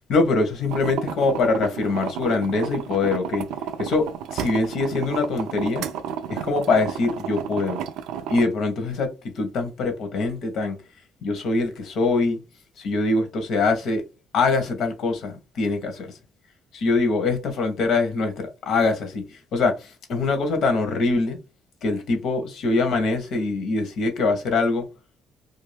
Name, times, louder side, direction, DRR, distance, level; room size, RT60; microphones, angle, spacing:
voice 1, 0.1-3.5 3.8-5.8 6.3-7.8 8.3-9.1 9.3-10.8 11.2-12.4 12.8-14.0 14.3-16.1 16.7-21.4 21.8-24.8, left 3 dB, 70° left, 0.9 m, -23 dB
sound 1, 0.7-8.5, right 8 dB, 85° right, 0.3 m, -32 dB
2.6 x 2.3 x 3.2 m
cardioid pair, 90°, 0 cm